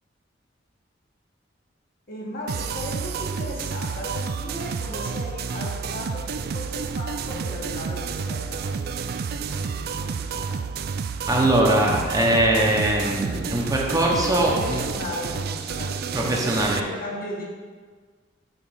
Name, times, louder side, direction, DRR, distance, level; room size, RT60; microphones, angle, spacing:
voice 1, 2.1-10.7 14.1-17.4, left 1 dB, 50° left, -4 dB, 1.7 m, -36 dB
sound 1, 2.5-16.8, right 6 dB, 55° right, 0.3 m, -30 dB
voice 2, 11.3-14.8 16.1-16.8, right 1 dB, 20° right, -2 dB, 0.9 m, -21 dB
7.1 x 3.9 x 5.5 m, 1.5 s
head